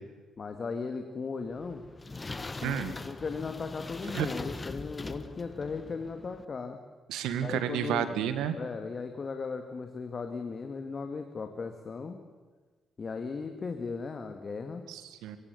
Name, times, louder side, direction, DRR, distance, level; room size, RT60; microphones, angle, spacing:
voice 1, 0.4-1.8 2.6-6.8 7.4-8.1 8.5-12.2 13.0-14.9, left 4 dB, 45° left, 6 dB, 2.1 m, -37 dB
sound 1, 1.5-6.5, left 3 dB, 30° left, 1.6 m, -41 dB
voice 2, 2.6-2.9 4.1-4.3 7.1-8.6 14.9-15.4, right 10 dB, 70° right, 11 dB, 1.8 m, -31 dB
24.5 x 24.0 x 7.0 m, 1.3 s
hypercardioid pair, 40°, 0 cm